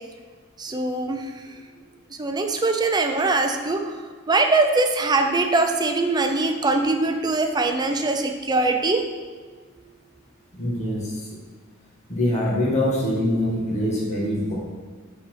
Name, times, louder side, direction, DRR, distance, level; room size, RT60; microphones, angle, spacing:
voice 1, 0.6-1.5 2.2-4.0 4.3-9.0, right 3 dB, 20° right, 4 dB, 0.5 m, -22 dB
voice 2, 10.5-11.1 12.1-14.5, left 1 dB, 35° left, -7 dB, 1.8 m, -24 dB
5.6 x 4.1 x 5.7 m, 1.5 s
head